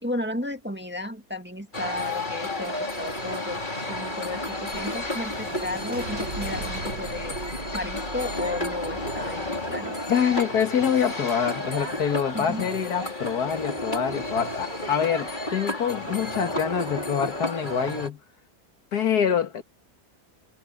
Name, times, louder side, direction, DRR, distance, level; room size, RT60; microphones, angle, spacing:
voice 1, 0.0-7.4 7.7-10.0 12.3-12.6, left 1 dB, 5° right, 1.8 m, -34 dB
sound 1, 1.7-18.1, left 1 dB, 30° left, 4.2 m, -32 dB
sound 2, 4.7-13.1, right 3 dB, 70° right, 2.5 m, -41 dB
voice 2, 10.1-18.2 18.9-19.6, left 8 dB, 90° left, 2.1 m, -25 dB
omnidirectional pair, 1.6 m